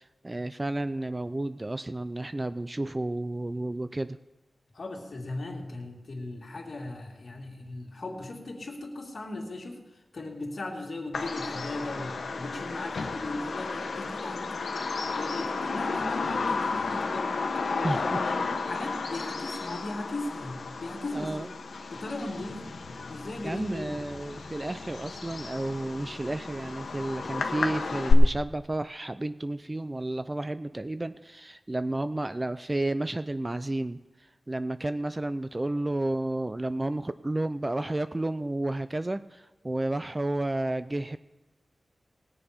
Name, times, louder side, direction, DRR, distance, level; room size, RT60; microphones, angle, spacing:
voice 1, 0.0-4.2 17.8-18.3 21.1-21.5 23.4-41.2, right 2 dB, 25° right, 12 dB, 0.4 m, -32 dB
voice 2, 4.7-14.8 15.1-17.4 17.9-18.4 18.7-21.5 21.9-22.8 23.1-24.0, left 2 dB, 60° left, 0 dB, 2.5 m, -38 dB
Bird vocalization bird call bird song, 11.1-28.1, left 4 dB, 85° left, 1.2 m, -32 dB
20.0 x 7.0 x 5.1 m, 1.1 s
wide cardioid pair, 65°, 0 cm